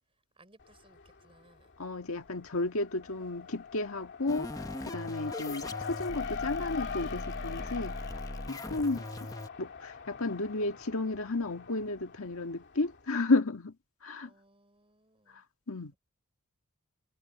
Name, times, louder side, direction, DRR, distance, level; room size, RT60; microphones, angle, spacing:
voice 1, 0.4-1.7 3.0-3.6 14.2-15.4, right 2 dB, 25° right, 5.6 m, -63 dB
Race car auto racing, 0.6-1.3 1.7-13.0, left 6 dB, 55° left, 2.7 m, -42 dB
voice 2, 1.8-8.0 8.5-9.3 9.6-13.7 14.0-14.3 15.7-15.9, left 2 dB, 70° left, 1.7 m, -32 dB
sound 1, 4.3-9.5, left 1 dB, 15° left, 1.0 m, -40 dB
head